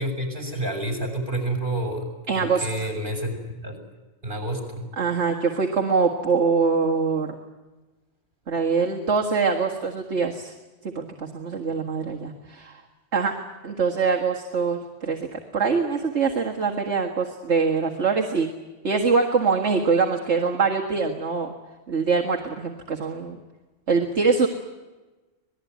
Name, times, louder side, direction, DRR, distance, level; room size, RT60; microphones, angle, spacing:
voice 1, 0.0-2.1 2.3-3.3 3.6-3.8 4.2-4.9, right 1 dB, 40° right, 4 dB, 6.4 m, -29 dB
voice 2, 2.3-2.7 5.0-7.4 8.5-10.5 10.9-12.8 13.1-13.4 13.6-18.5 18.8-21.5 21.9-23.4 23.9-24.5, right 5 dB, 65° right, 1 dB, 2.1 m, -23 dB
26.5 x 19.5 x 9.4 m, 1.2 s
omnidirectional pair, 1.3 m